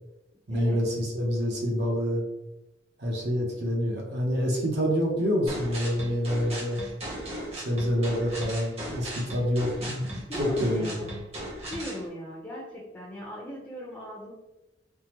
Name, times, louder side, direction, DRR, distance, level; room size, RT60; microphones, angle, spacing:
voice 1, 0.5-2.2 3.0-6.8 7.5-11.1, equal, 65° right, -1 dB, 0.8 m, -27 dB
sound 1, 5.5-12.0, right 1 dB, 35° right, 0.8 m, -37 dB
voice 2, 10.3-11.1 11.7-14.3, equal, 10° left, -6 dB, 0.6 m, -38 dB
3.6 x 2.0 x 2.9 m, 0.97 s
head